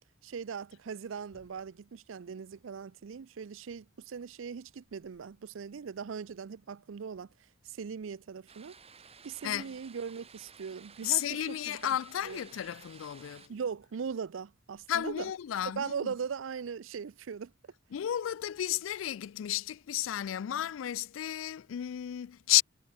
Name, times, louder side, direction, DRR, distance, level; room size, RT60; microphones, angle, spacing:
voice 1, 0.2-7.3 7.6-8.7 9.2-12.0 12.2-12.4 13.5-15.3 15.6-17.5, right 6 dB, 90° right, 0.5 m, -39 dB
sound 1, 8.5-13.5, right 6 dB, 30° right, 5.7 m, -54 dB
voice 2, 11.0-13.5 14.9-16.1 17.9-22.6, left 12 dB, 90° left, 0.3 m, -32 dB
head